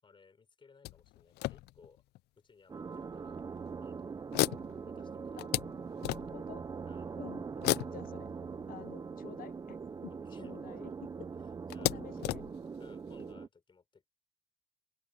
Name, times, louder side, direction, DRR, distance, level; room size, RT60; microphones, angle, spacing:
voice 1, 0.0-2.0 2.4-3.4 3.8-4.2 4.8-5.4 6.2-6.3 6.8-7.2 10.1-10.5 11.4-12.0 12.8-14.1, left 5 dB, 30° left, 5.4 m, -62 dB
sound 1, 0.8-2.2 2.9-3.0 3.4-3.6 4.3-6.6 7.6-9.3 10.4-10.5 10.8-10.9 11.7-13.3, left 18 dB, 75° left, 0.4 m, -36 dB
sound 2, 2.7-13.5, right 5 dB, 25° right, 0.6 m, -42 dB
voice 2, 6.3-6.7 7.1-7.4 7.9-8.3 8.7-11.3 11.9-12.4, left 12 dB, 55° left, 0.9 m, -50 dB
open air
cardioid pair, 110°, 17 cm